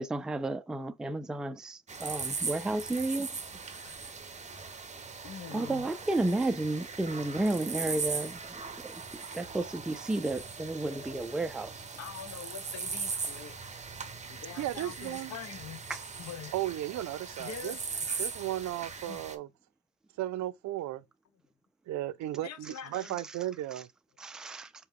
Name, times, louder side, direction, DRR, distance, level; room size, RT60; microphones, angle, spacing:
voice 1, 0.0-3.3 5.5-8.4 8.8-11.7 24.2-24.7, right 2 dB, ahead, 0.3 m, -32 dB
sound 1, 1.9-19.4, right 5 dB, 25° right, 0.7 m, -39 dB
voice 2, 5.2-5.9 12.0-13.6 14.2-15.8 16.2-16.5 17.4-17.8 19.0-19.2 22.4-23.2, left 8 dB, 60° left, 0.8 m, -44 dB
voice 3, 14.6-15.3 16.5-17.8 18.2-19.5 20.2-21.1 21.9-23.9, right 14 dB, 70° right, 0.4 m, -35 dB
4.5 x 2.2 x 3.6 m
cardioid pair, 90°, 30 cm